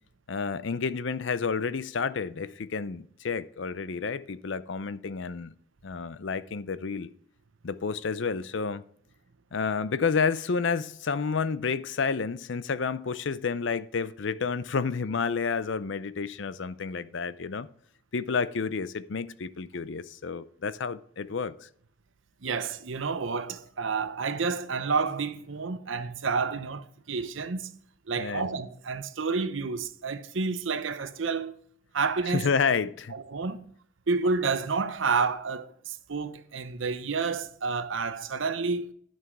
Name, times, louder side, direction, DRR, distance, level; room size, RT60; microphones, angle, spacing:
voice 1, 0.3-5.5 5.8-7.1 7.6-8.8 9.5-17.7 18.1-21.7 28.2-28.5 32.2-33.1, left 5 dB, 65° left, 0.5 m, -30 dB
voice 2, 22.4-27.7 28.1-31.5 31.9-32.5 33.1-33.6 34.1-38.9, right 4 dB, 75° right, 0.8 m, -30 dB
11.5 x 6.3 x 4.7 m
head